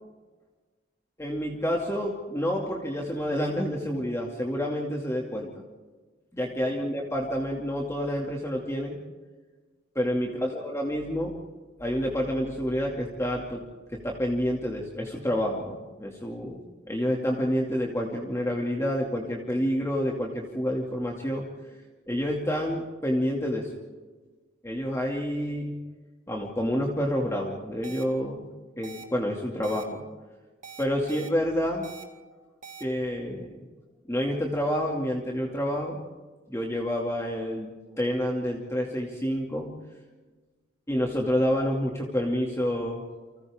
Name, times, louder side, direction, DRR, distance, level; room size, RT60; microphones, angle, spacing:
voice 1, 1.2-5.5 6.3-9.0 9.9-11.3 11.8-13.6 13.9-16.6 16.9-21.4 22.1-23.7 24.6-25.8 26.3-28.5 28.8-30.0 30.8-31.9 32.8-33.7 34.1-36.1 36.5-37.7 38.0-39.7 40.9-43.0, equal, 15° left, -1 dB, 2.4 m, -28 dB
sound 1, 27.8-28.0 28.8-29.0 29.6-29.8 30.6-31.3 31.8-32.0 32.6-32.8, right 6 dB, 40° right, 2.3 m, -43 dB
30.0 x 25.5 x 3.7 m, 1.3 s
head